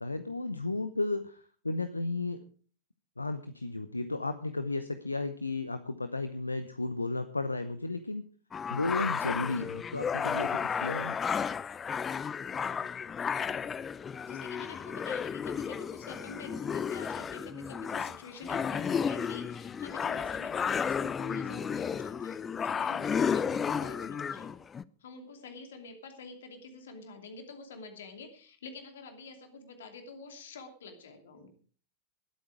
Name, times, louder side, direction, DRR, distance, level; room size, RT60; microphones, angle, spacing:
voice 1, 0.0-2.4 3.2-8.2 8.7-11.2, left 2 dB, 80° left, 11 dB, 0.8 m, -34 dB
sound 1, 8.5-24.8, left 6 dB, 20° left, 0.5 m, -33 dB
voice 2, 14.3-24.5 25.0-31.5, left 4 dB, 60° left, 6 dB, 2.7 m, -47 dB
19.5 x 8.6 x 4.8 m, 0.42 s
figure-of-eight pair, 90°, 0 cm